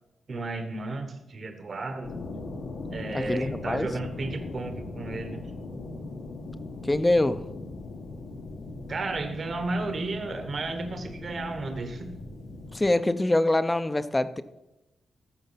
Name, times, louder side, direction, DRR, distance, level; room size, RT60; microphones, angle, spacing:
voice 1, 0.3-2.2 2.9-5.4 8.9-12.2, right 3 dB, 45° right, 7 dB, 1.3 m, -33 dB
sound 1, 2.0-12.9, left 3 dB, 85° left, 1.5 m, -39 dB
voice 2, 3.1-3.9 6.8-7.4 12.7-14.4, left 1 dB, 15° left, 13 dB, 0.6 m, -24 dB
14.5 x 6.3 x 5.7 m, 0.97 s
wide cardioid pair, 125°, 0 cm